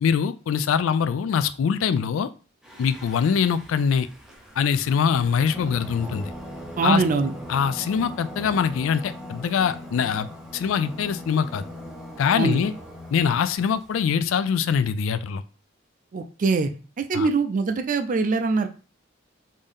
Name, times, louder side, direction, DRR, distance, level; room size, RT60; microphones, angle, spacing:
voice 1, 0.0-2.3 2.8-4.1 4.6-6.3 6.8-7.0 7.5-11.6 12.2-12.7 13.1-15.4 17.1-17.3, left 7 dB, 80° left, 13 dB, 0.3 m, -23 dB
Singing, 2.6-14.0, equal, 5° right, 0.7 m, -40 dB
voice 2, 6.8-7.3 12.4-12.6 16.1-16.7 17.0-18.7, right 4 dB, 40° right, 7 dB, 0.4 m, -23 dB
5.3 x 2.7 x 3.5 m, 0.37 s
head